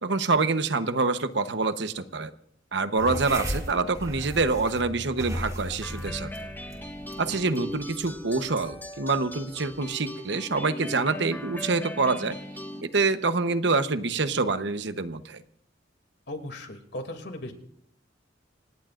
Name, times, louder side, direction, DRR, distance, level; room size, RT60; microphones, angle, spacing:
voice 1, 0.0-2.3 2.7-6.3 7.2-12.4 12.8-15.4, right 3 dB, 70° right, 10 dB, 1.0 m, -26 dB
sound 1, 3.0-9.9, equal, 20° right, 3.0 m, -37 dB
sound 2, 5.8-12.8, left 1 dB, 10° left, 1.6 m, -39 dB
voice 2, 16.3-17.5, left 1 dB, 70° left, 5 dB, 2.7 m, -37 dB
27.0 x 18.0 x 2.5 m, 0.68 s
head